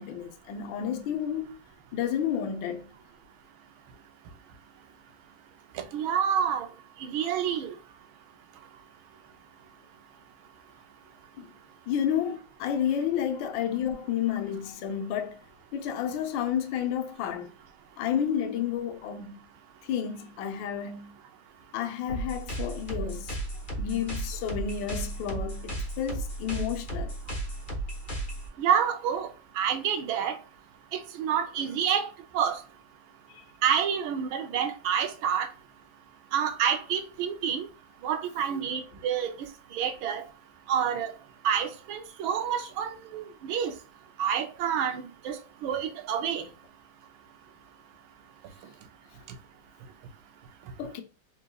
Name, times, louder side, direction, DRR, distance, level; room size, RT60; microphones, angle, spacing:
voice 1, 0.0-1.6 1.9-2.9 11.4-11.5 11.9-15.4 15.7-17.5 18.0-19.4 19.8-21.1 21.7-23.4 23.8-27.1 33.3-33.4 50.8-51.0, left 9 dB, 70° left, 1.3 m, -31 dB
voice 2, 5.7-6.7 7.0-7.7 28.6-29.3 29.5-30.4 30.9-32.1 32.3-32.6 33.6-35.5 36.3-37.7 38.0-39.3 39.7-40.2 40.7-41.1 41.4-43.7 44.2-46.5, right 8 dB, 80° right, 1.5 m, -28 dB
sound 1, 22.1-28.5, right 1 dB, 35° left, 0.9 m, -35 dB
4.1 x 3.7 x 2.3 m
omnidirectional pair, 2.2 m